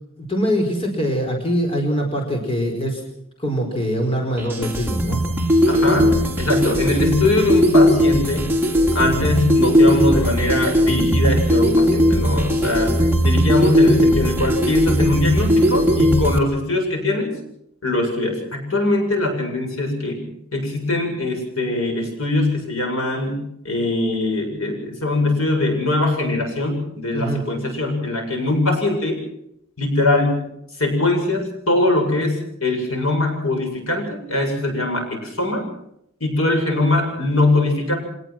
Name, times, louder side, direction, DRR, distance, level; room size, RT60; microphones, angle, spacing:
voice 1, 0.2-3.0 3.4-5.2 9.0-9.2 27.1-27.4, equal, 25° left, 2 dB, 4.9 m, -23 dB
sound 1, 4.4-16.4, equal, 10° right, 2.8 m, -18 dB
voice 2, 5.7-8.5 8.9-12.9 13.2-17.3 17.8-29.2 29.8-30.5 30.8-35.7 36.2-37.9, left 2 dB, 75° left, 3 dB, 8.0 m, -21 dB
26.0 x 19.5 x 6.2 m, 0.76 s
head